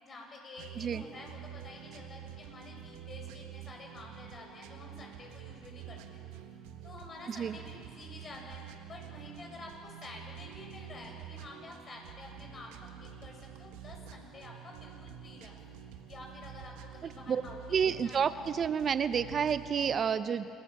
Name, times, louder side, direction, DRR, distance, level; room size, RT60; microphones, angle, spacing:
voice 1, 0.0-6.2 6.8-8.6 8.9-15.7 16.1-18.3 19.9-20.1, left 2 dB, 40° left, 1 dB, 7.7 m, -49 dB
sound 1, 0.6-20.0, right 9 dB, 80° right, 1.6 m, -48 dB
voice 2, 17.7-20.5, right 7 dB, 45° right, 12 dB, 0.8 m, -29 dB
27.5 x 17.5 x 7.6 m, 2.4 s
supercardioid pair, 75°, 0 cm